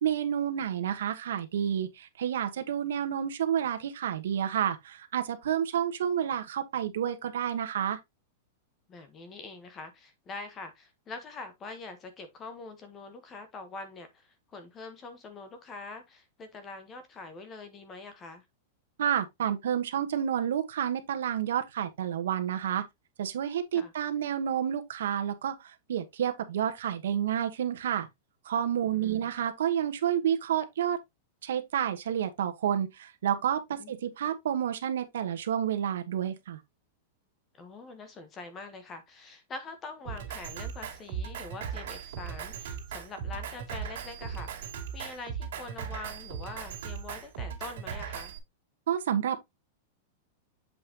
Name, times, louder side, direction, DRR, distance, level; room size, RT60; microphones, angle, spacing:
voice 1, 0.0-8.0 19.0-22.8 23.2-28.1 28.4-31.0 31.4-36.6 48.9-49.4, right 9 dB, 80° right, 1.3 m, -30 dB
voice 2, 8.9-18.4 23.7-23.9 28.9-29.3 33.8-33.9 37.5-48.3, left 3 dB, 15° left, 1.1 m, -44 dB
Drum kit, 40.0-48.4, right 7 dB, 55° right, 2.6 m, -38 dB
7.7 x 5.6 x 2.9 m
supercardioid pair, 180°, 0 cm